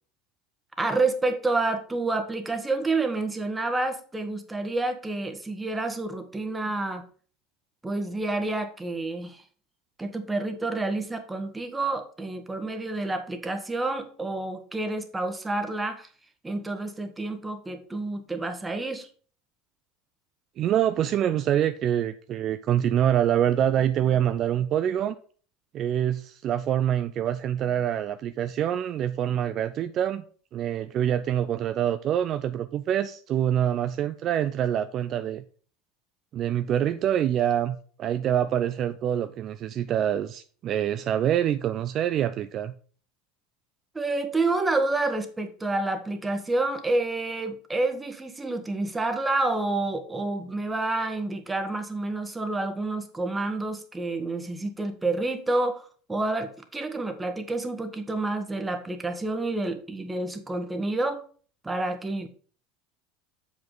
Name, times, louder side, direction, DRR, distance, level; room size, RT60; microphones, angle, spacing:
voice 1, 0.8-7.0 7.8-9.4 10.0-16.1 16.4-19.1 43.9-61.2 61.6-62.3, right 2 dB, 15° right, 1.2 m, -29 dB
voice 2, 20.6-25.2 25.7-30.2 30.5-35.4 36.3-42.7, right 10 dB, 45° right, 0.4 m, -25 dB
7.1 x 5.3 x 3.9 m
hypercardioid pair, 80°, 0 cm